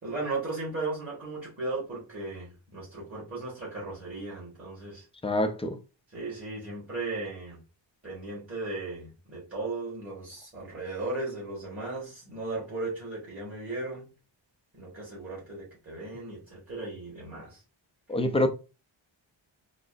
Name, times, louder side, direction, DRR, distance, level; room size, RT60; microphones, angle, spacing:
voice 1, 0.0-5.0 6.1-7.6 8.0-14.1 14.7-17.6, right 3 dB, 30° right, 1.6 m, -36 dB
voice 2, 5.2-5.8 18.1-18.5, left 1 dB, 15° left, 0.4 m, -25 dB
3.8 x 2.0 x 2.5 m
wide cardioid pair, 85°, 48 cm